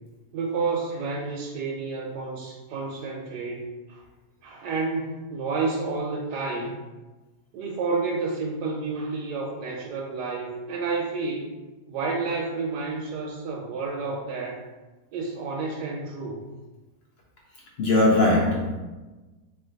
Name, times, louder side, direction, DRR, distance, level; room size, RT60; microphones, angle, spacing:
voice 1, 0.3-4.0 4.4-6.7 7.5-11.5 11.9-14.6 15.1-16.4, right 4 dB, 90° right, -1 dB, 1.2 m, -30 dB
voice 2, 17.8-18.8, left 2 dB, 75° left, -2 dB, 0.5 m, -20 dB
4.2 x 2.5 x 3.8 m, 1.2 s
omnidirectional pair, 1.7 m